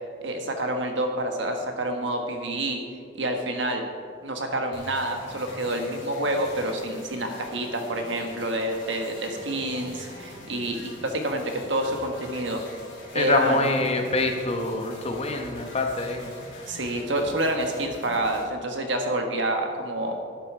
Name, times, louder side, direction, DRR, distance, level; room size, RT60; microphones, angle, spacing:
voice 1, 0.2-2.8 3.1-3.8 4.2-12.6 13.1-13.8 16.7-20.2, right 1 dB, 65° right, 4 dB, 1.4 m, -28 dB
sound 1, 4.7-18.4, left 1 dB, 70° left, 3.3 m, -43 dB
voice 2, 13.1-16.6, left 2 dB, 30° left, 4 dB, 1.1 m, -26 dB
11.5 x 9.9 x 4.9 m, 2.2 s
head